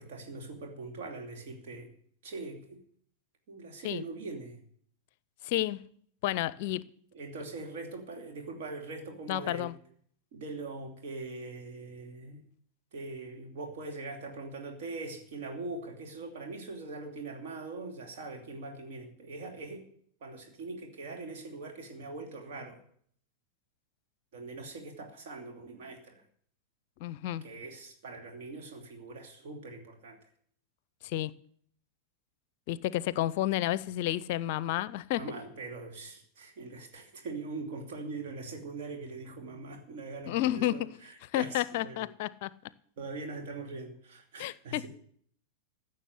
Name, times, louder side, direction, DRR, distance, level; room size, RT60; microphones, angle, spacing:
voice 1, 0.0-1.9 2.2-2.8 3.5-4.6 7.1-9.7 10.3-12.4 12.9-19.8 20.2-22.8 24.3-26.2 27.4-30.2 35.1-42.0 43.0-44.9, right 3 dB, 55° right, 2.6 m, -42 dB
voice 2, 5.4-5.8 6.2-6.8 9.3-9.8 27.0-27.4 31.0-31.3 32.7-35.2 40.3-40.9 41.2-42.5 44.4-44.8, left 14 dB, 50° left, 0.6 m, -31 dB
15.5 x 6.7 x 9.4 m
figure-of-eight pair, 90°, 0 cm